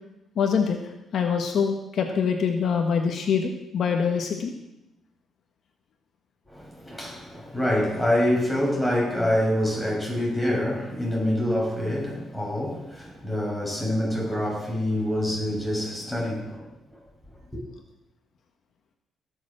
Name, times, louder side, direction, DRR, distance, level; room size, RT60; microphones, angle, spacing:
voice 1, 0.4-0.8 1.1-4.5, left 6 dB, 65° left, 3 dB, 1.5 m, -24 dB
voice 2, 6.5-16.6, left 1 dB, ahead, -3 dB, 6.5 m, -26 dB
18.5 x 7.2 x 6.3 m, 0.88 s
cardioid pair, 90°, 0 cm